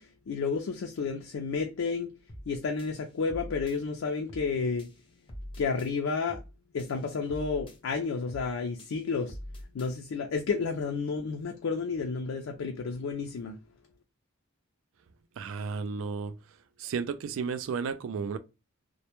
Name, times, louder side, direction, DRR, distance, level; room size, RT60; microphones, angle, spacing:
voice 1, 0.0-2.1 2.5-4.9 5.6-6.4 6.7-9.4 9.7-13.6, left 4 dB, 75° left, 0.4 m, -31 dB
sound 1, 2.3-2.5 2.8-3.8 4.3-4.5 4.8-5.9 6.3-6.5 6.8-7.8 8.3-8.5 8.8-9.9, equal, 25° left, 0.6 m, -44 dB
voice 2, 15.4-16.4 16.8-18.4, right 5 dB, 70° right, 0.3 m, -33 dB
2.1 x 2.1 x 2.9 m
head